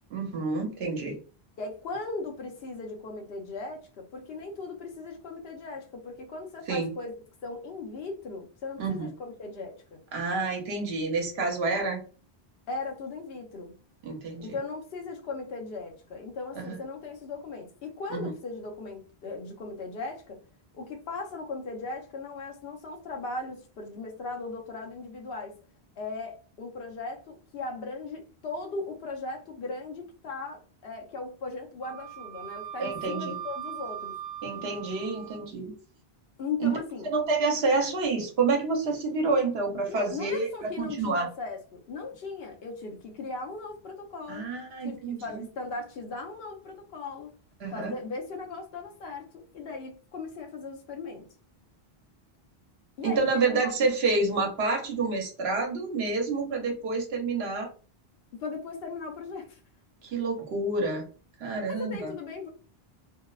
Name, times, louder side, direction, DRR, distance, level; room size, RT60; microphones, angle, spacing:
voice 1, 0.1-1.2 6.7-6.9 8.8-9.1 10.1-12.0 14.0-14.6 16.5-16.8 18.1-18.3 32.8-33.4 34.4-35.7 36.6-36.8 37.0-41.3 44.3-45.4 47.6-47.9 53.0-57.7 60.0-61.0 61.4-62.1, right 3 dB, 75° right, 0.9 m, -28 dB
voice 2, 1.6-7.1 7.4-10.0 12.7-13.8 14.4-20.4 20.7-25.6 26.0-34.2 36.4-37.1 39.9-44.5 44.8-47.3 47.7-51.3 53.0-53.7 58.4-59.6 61.6-62.5, left 3 dB, 70° left, 0.9 m, -38 dB
Wind instrument woodwind instrument, 31.8-35.5, right 11 dB, 55° right, 0.4 m, -40 dB
2.6 x 2.0 x 2.3 m
omnidirectional pair, 1.1 m